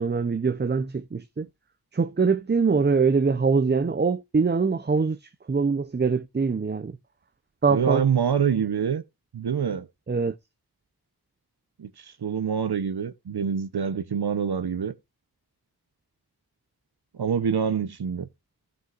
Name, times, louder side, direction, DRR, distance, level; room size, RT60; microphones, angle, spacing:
voice 1, 0.0-1.5 1.9-7.0 7.6-8.0 10.1-10.4, right 5 dB, 25° right, 0.6 m, -23 dB
voice 2, 7.7-9.0 9.3-9.9 11.8-14.9 17.1-18.3, right 7 dB, 75° right, 0.8 m, -26 dB
15.5 x 6.3 x 2.4 m
wide cardioid pair, 50°, 39 cm